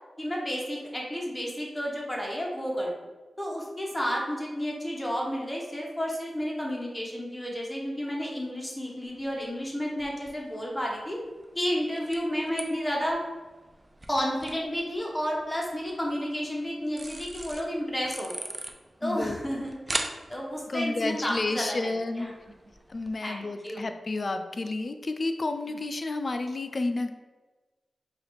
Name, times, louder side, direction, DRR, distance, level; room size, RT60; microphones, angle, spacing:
voice 1, 0.2-2.9 3.4-11.2 11.5-13.2 14.1-18.5 19.0-22.3 23.2-23.9, equal, 10° left, -2 dB, 1.0 m, -31 dB
sound 1, 9.1-23.2, right 1 dB, 30° right, 0.4 m, -43 dB
voice 2, 19.0-19.7 20.7-22.3 22.9-27.1, left 2 dB, 50° left, 8 dB, 0.3 m, -31 dB
4.8 x 2.4 x 3.2 m, 1.2 s
cardioid pair, 50°, 0 cm